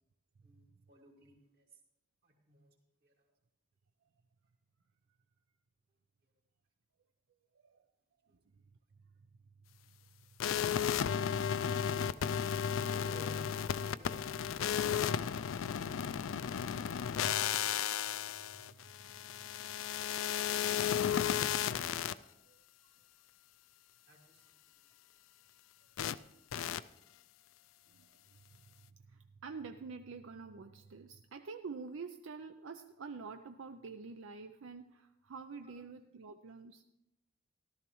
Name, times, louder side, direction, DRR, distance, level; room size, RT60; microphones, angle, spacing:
voice 1, 0.4-1.6 2.2-2.7 3.0-3.1 8.3-8.4 12.9-14.2 24.1-24.6 35.6-35.7, equal, 50° right, 0 dB, 2.3 m, -57 dB
sound 1, 10.4-22.1 26.0-26.1 26.5-26.8, left 9 dB, 90° left, 0.4 m, -34 dB
voice 2, 18.6-18.9 22.8-22.9 27.9-36.8, right 4 dB, 85° right, 7 dB, 0.5 m, -49 dB
14.0 x 12.5 x 3.1 m, 0.87 s
head